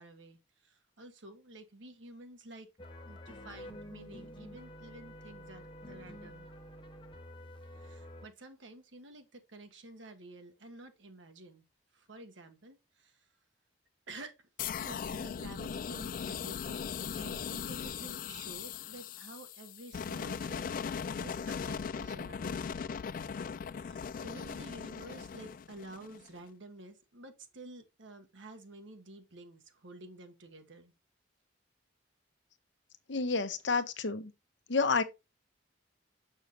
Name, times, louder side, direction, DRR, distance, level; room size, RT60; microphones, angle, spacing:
voice 1, 0.0-2.7 3.0-6.5 7.7-11.6 11.9-13.2 14.1-14.4 14.8-20.8 21.1-22.6 23.7-30.9, right 2 dB, 75° right, 1.3 m, -51 dB
sound 1, 2.8-8.3, equal, 25° left, 0.8 m, -49 dB
sound 2, 14.6-26.4, left 7 dB, 45° left, 0.3 m, -39 dB
voice 2, 33.1-34.3 34.7-35.0, left 4 dB, 70° left, 0.9 m, -29 dB
6.7 x 6.3 x 2.9 m
head